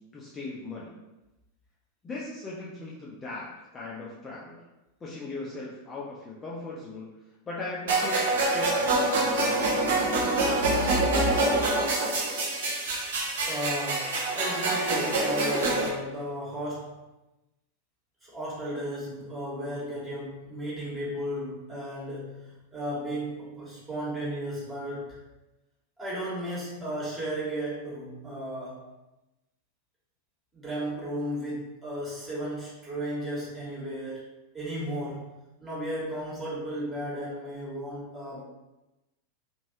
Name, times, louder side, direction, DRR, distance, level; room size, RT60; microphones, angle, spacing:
voice 1, 0.1-0.9 2.0-3.5 3.7-4.6 5.0-7.2 7.5-10.4, left 2 dB, 20° left, -5 dB, 0.5 m, -38 dB
sound 1, 7.9-15.9, right 2 dB, 60° right, 0.7 m, -26 dB
voice 2, 13.3-17.0 18.2-25.2 26.0-28.8 30.5-34.2 34.5-35.3 35.6-38.4, equal, 15° right, -7 dB, 1.4 m, -34 dB
3.0 x 2.6 x 2.8 m, 0.98 s
figure-of-eight pair, 90°, 0 cm